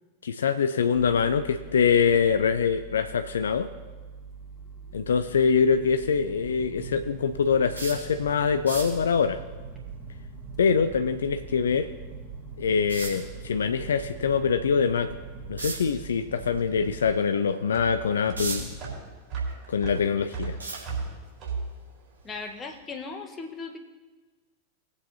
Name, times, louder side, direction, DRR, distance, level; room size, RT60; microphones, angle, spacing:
voice 1, 0.2-3.7 4.9-9.4 10.6-11.9 12.6-15.1 15.5-18.7 19.7-20.6, left 6 dB, 65° left, 9 dB, 0.4 m, -24 dB
sound 1, 1.0-17.1, right 4 dB, 10° right, 2.2 m, -42 dB
sound 2, 7.7-8.1 8.5-9.0 11.8-11.9 12.9-13.3 15.6-15.9 16.4-16.6 17.1-17.2 17.9-18.8 19.2-20.0 20.6-21.3 22.2-22.4 22.7-22.8, right 3 dB, 80° right, 2.8 m, -34 dB
sound 3, 16.4-22.9, right 4 dB, 35° right, 4.1 m, -36 dB
voice 2, 22.2-23.8, left 4 dB, 20° left, 4 dB, 1.2 m, -37 dB
20.0 x 8.0 x 2.8 m, 1.3 s
figure-of-eight pair, 90°, 0 cm